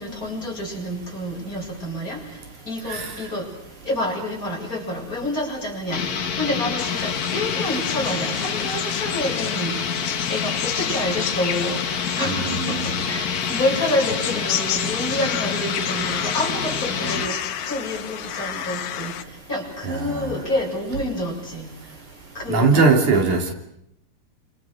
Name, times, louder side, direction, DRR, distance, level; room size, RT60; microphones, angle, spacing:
voice 1, 0.0-2.2 2.7-3.4 3.9-6.0 6.4-9.8 10.3-11.8 12.2-12.8 13.0-19.1 19.5-21.7 22.3-22.9, left 1 dB, 25° left, 8.3 m, -28 dB
sound 1, 5.9-17.4, left 6 dB, 45° left, 1.4 m, -27 dB
sound 2, 6.8-19.2, left 10 dB, 85° left, 2.6 m, -31 dB
voice 2, 12.2-12.9 19.8-20.3 22.5-23.5, right 4 dB, 85° right, 4.5 m, -20 dB
29.5 x 27.0 x 6.5 m
omnidirectional pair, 3.3 m